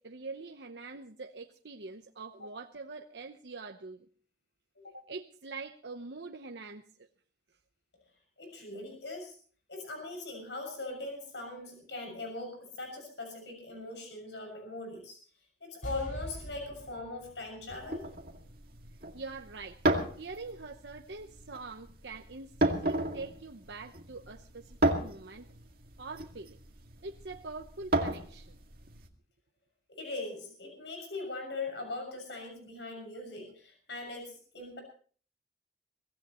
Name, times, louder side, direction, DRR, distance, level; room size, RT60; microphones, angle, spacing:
voice 1, 0.0-4.1 4.8-6.8 19.1-19.8 20.2-25.5 26.0-26.6 27.0-28.6, right 3 dB, 75° right, 4 dB, 0.9 m, -44 dB
voice 2, 8.4-9.4 9.7-15.2 15.6-18.0 29.9-34.8, left 2 dB, 75° left, 4 dB, 6.7 m, -40 dB
sound 1, 15.8-19.0 19.3-19.4, equal, 45° left, 5.0 m, -45 dB
sound 2, 17.7-29.1, right 1 dB, 55° right, 2.2 m, -34 dB
23.5 x 16.5 x 3.1 m, 0.43 s
head